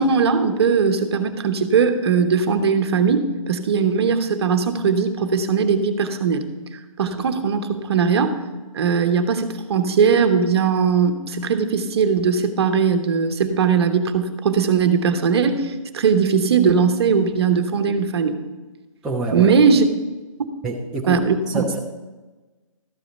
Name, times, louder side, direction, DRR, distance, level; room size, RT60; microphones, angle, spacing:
voice 1, 0.0-6.4 7.0-8.4 8.7-18.4 19.3-19.9 21.1-21.6, right 6 dB, 45° right, 8 dB, 1.1 m, -19 dB
voice 2, 19.0-19.5 20.6-21.9, right 2 dB, 5° right, -4 dB, 0.6 m, -27 dB
13.0 x 4.9 x 6.8 m, 1.2 s
hypercardioid pair, 155°, 18 cm